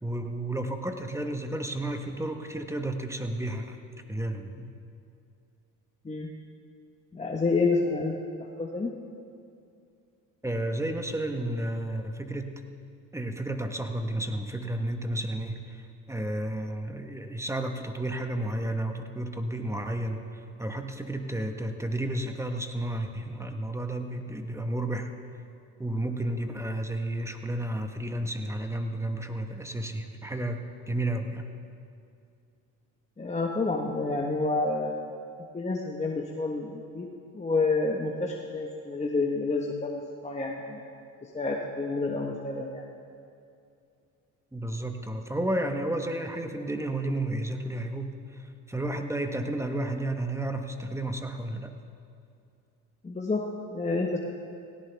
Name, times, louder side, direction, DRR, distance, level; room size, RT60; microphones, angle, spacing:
voice 1, 0.0-3.8 4.1-4.7 10.4-12.6 13.1-25.1 25.8-30.6 30.9-31.5 44.5-51.8, right 1 dB, 5° right, 5 dB, 1.3 m, -32 dB
voice 2, 7.1-8.9 33.2-35.0 35.5-37.1 37.3-40.8 41.2-42.8 53.0-54.2, left 3 dB, 20° left, 0 dB, 1.3 m, -29 dB
17.5 x 17.0 x 3.5 m, 2.5 s
supercardioid pair, 80°, 38 cm